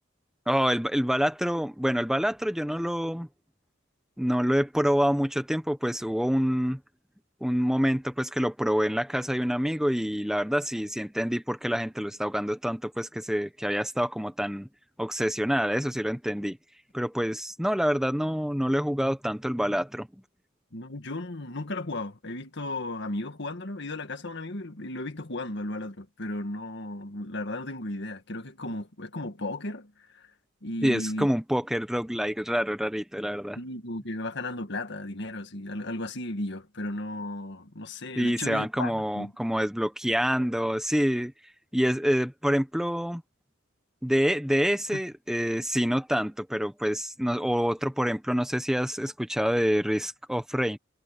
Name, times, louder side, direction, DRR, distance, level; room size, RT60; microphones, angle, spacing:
voice 1, 0.5-3.3 4.2-6.8 7.4-14.7 15.0-16.6 16.9-20.1 30.8-33.6 38.2-41.3 41.7-43.2 44.0-50.8, equal, 5° right, 1.1 m, -27 dB
voice 2, 20.7-30.3 30.6-31.3 33.6-39.3 44.9-45.0, left 2 dB, 60° left, 1.9 m, -35 dB
head